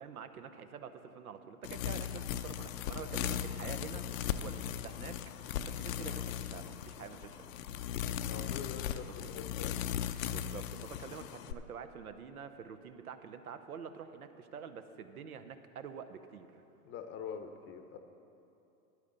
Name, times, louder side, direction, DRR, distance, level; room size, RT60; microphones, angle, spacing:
voice 1, 0.0-4.1 4.4-5.2 5.6-7.5 9.1-9.3 10.2-16.5, right 7 dB, 85° right, 9 dB, 0.8 m, -47 dB
sound 1, 1.6-11.5, left 10 dB, 65° left, 0.6 m, -38 dB
voice 2, 8.3-9.8 16.8-18.0, left 7 dB, 30° left, 7 dB, 0.7 m, -44 dB
12.5 x 10.0 x 3.9 m, 2.8 s
hypercardioid pair, 105°, 43 cm